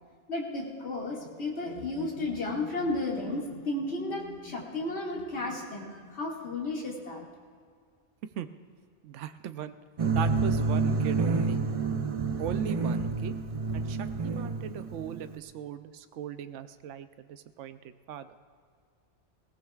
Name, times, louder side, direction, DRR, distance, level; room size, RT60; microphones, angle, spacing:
voice 1, 0.3-7.3, left 2 dB, 65° left, -3 dB, 2.3 m, -33 dB
voice 2, 9.0-9.8 10.1-11.6 12.4-13.3 13.7-18.3, right 9 dB, 80° right, 11 dB, 0.9 m, -38 dB
sound 1, 10.0-15.4, right 4 dB, 35° right, 0.6 m, -28 dB
21.5 x 18.0 x 2.4 m, 2.1 s
omnidirectional pair, 1.2 m